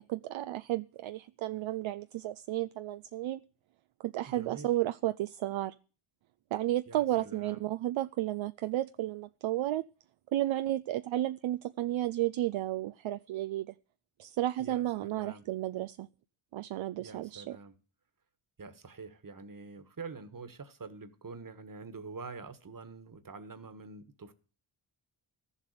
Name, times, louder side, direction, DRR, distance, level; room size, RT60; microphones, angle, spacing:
voice 1, 0.0-3.4 4.0-5.7 6.5-9.8 10.3-13.7 14.2-16.1 16.5-17.6, right 14 dB, 70° right, 0.6 m, -33 dB
voice 2, 4.3-4.7 6.9-7.6 14.6-15.5 17.0-17.7 18.6-24.3, right 4 dB, 40° right, 1.6 m, -46 dB
13.0 x 7.3 x 6.6 m
cardioid pair, 50°, 50 cm